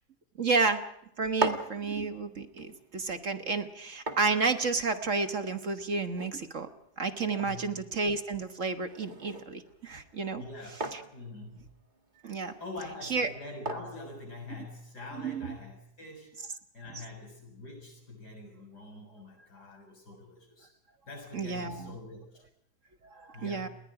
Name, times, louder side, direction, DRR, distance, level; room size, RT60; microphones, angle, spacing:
voice 1, 0.4-0.8 1.2-6.7 7.0-10.4 12.2-12.5 13.1-13.3 15.2-15.5 21.3-21.9 23.4-23.7, right 4 dB, 50° right, 8 dB, 1.6 m, -31 dB
sound 1, 1.1-15.0, right 3 dB, 25° right, 2.1 m, -42 dB
voice 2, 7.4-7.7 10.3-10.8 11.1-11.6 12.6-16.3 16.7-20.7 21.1-22.4 23.3-23.7, left 2 dB, 70° left, 3 dB, 7.3 m, -44 dB
29.5 x 21.0 x 4.9 m, 0.75 s
omnidirectional pair, 1.8 m